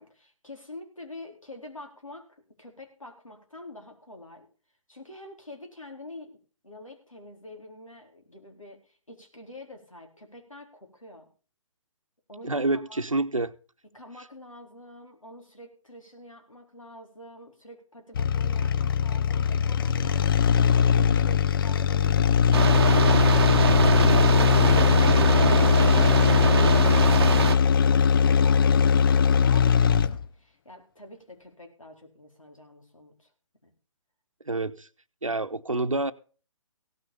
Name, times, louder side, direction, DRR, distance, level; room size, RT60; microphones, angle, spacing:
voice 1, 0.0-4.5 4.9-6.4 6.6-11.3 12.3-13.0 13.9-23.7 24.0-33.3 33.6-33.7, left 1 dB, 85° left, 4.1 m, -46 dB
voice 2, 12.4-13.5 34.5-34.9 35.2-36.1, right 2 dB, 85° right, 1.0 m, -27 dB
sound 1, 18.1-30.3, left 7 dB, 45° left, 0.7 m, -20 dB
sound 2, 22.5-27.6, right 7 dB, 50° right, 0.9 m, -24 dB
16.5 x 6.5 x 7.1 m
figure-of-eight pair, 135°, 16 cm